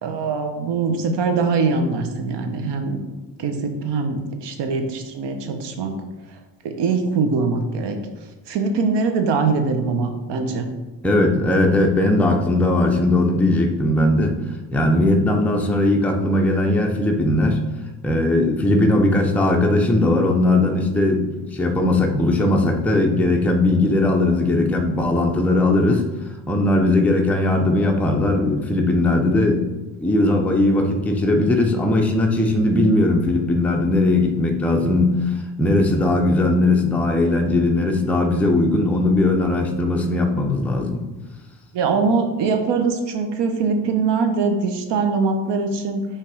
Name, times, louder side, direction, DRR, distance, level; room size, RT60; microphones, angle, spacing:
voice 1, 0.0-3.0 3.4-5.9 6.6-8.0 8.5-10.7 41.7-46.1, right 4 dB, 70° right, 5 dB, 1.0 m, -22 dB
voice 2, 11.0-14.4 14.7-17.6 18.0-26.0 26.5-29.6 30.0-41.0, left 2 dB, 5° left, 2 dB, 0.6 m, -19 dB
5.7 x 3.4 x 4.9 m, 1.1 s
cardioid pair, 95°, 44 cm